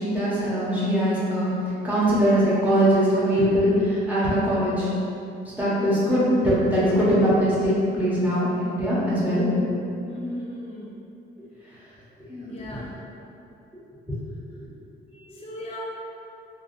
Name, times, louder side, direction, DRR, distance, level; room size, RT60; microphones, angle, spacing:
voice 1, 0.0-1.5 1.8-4.9 5.5-9.5 12.3-12.5 14.6-14.7, equal, 10° right, -10 dB, 1.2 m, -21 dB
voice 2, 10.1-10.9 12.4-13.0 15.1-15.8, left 1 dB, 30° left, -4 dB, 0.5 m, -36 dB
3.5 x 2.5 x 2.6 m, 2.7 s
cardioid pair, 90°, 20 cm